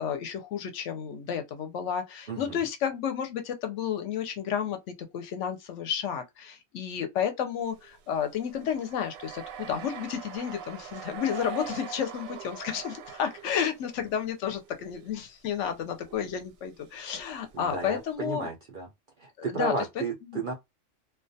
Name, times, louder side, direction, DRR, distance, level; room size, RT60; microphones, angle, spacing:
voice 1, 0.0-4.8 5.1-18.5 19.4-19.7 20.2-20.4, left 8 dB, 70° left, 0.8 m, -31 dB
voice 2, 2.3-2.6 17.5-18.9 19.2-20.5, right 3 dB, 70° right, 0.5 m, -33 dB
sound 1, 7.7-14.3 14.6-15.2 15.6-15.7 16.1-16.3 16.9-18.2, right 8 dB, 85° right, 1.0 m, -43 dB
2.3 x 2.3 x 2.6 m
omnidirectional pair, 1.4 m